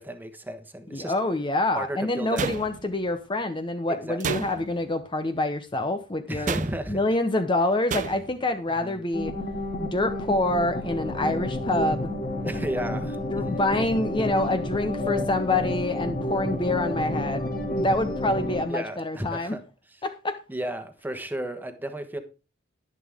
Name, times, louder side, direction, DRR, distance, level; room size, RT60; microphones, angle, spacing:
voice 1, 0.0-1.1 1.7-2.4 3.9-4.4 6.3-7.0 8.8-9.0 12.4-13.6 17.1-17.3 18.7-19.6 20.5-22.2, right 1 dB, 10° right, 8 dB, 1.3 m, -33 dB
voice 2, 0.9-6.5 6.9-9.3 9.8-12.1 13.3-17.4 17.8-19.6 20.0-20.4, left 2 dB, 25° left, 8 dB, 0.8 m, -26 dB
sound 1, 2.4-3.1 4.2-4.9 6.5-7.0 7.9-8.4, right 5 dB, 40° right, 0.5 m, -31 dB
sound 2, 9.1-18.6, left 1 dB, 50° left, 2.9 m, -30 dB
11.0 x 10.5 x 3.5 m, 0.30 s
head